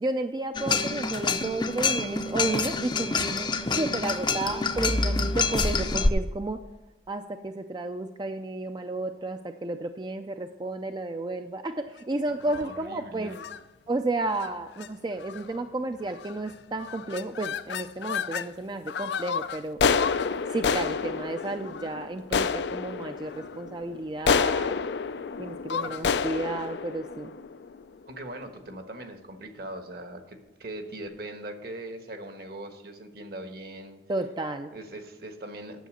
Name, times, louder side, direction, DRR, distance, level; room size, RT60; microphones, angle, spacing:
voice 1, 0.0-6.6 7.1-13.4 13.9-19.8 20.5-24.8 25.4-27.3 34.1-34.7, right 2 dB, 25° right, 7 dB, 0.4 m, -32 dB
sound 1, 0.5-6.1, left 3 dB, 25° left, 0.6 m, -27 dB
voice 2, 12.3-13.4 25.9-26.0 28.1-34.0 34.7-35.9, right 1 dB, 60° right, 6 dB, 1.3 m, -40 dB
sound 2, 12.4-12.8 13.3-13.6 14.3-14.5 14.8-14.9 15.2-15.6 16.2-16.5 16.8-18.5 18.9-28.0, left 6 dB, 75° left, 0.4 m, -29 dB
9.3 x 7.4 x 6.4 m, 1.1 s
head